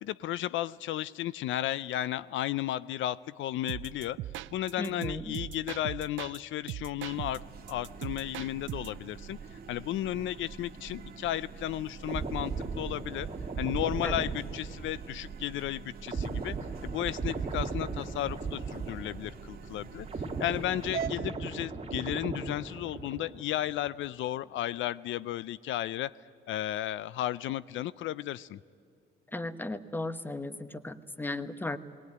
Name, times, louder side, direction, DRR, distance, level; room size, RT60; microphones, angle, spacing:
voice 1, 0.0-4.2 4.5-13.3 13.6-16.6 16.8-20.1 20.4-26.1 26.5-28.6, left 13 dB, 75° left, 19 dB, 0.4 m, -34 dB
sound 1, 3.7-6.4 6.7-9.0, right 14 dB, 80° right, 0.5 m, -40 dB
voice 2, 4.8-5.3 14.0-14.3 29.3-31.8, left 2 dB, 10° left, 13 dB, 1.0 m, -36 dB
sound 2, 7.0-21.1, right 6 dB, 50° right, 1.8 m, -45 dB
sound 3, 12.0-19.6 19.8-23.5 23.8-24.1, right 4 dB, 30° right, 2.4 m, -37 dB
19.5 x 18.5 x 9.5 m, 2.5 s
cardioid pair, 90°, 20 cm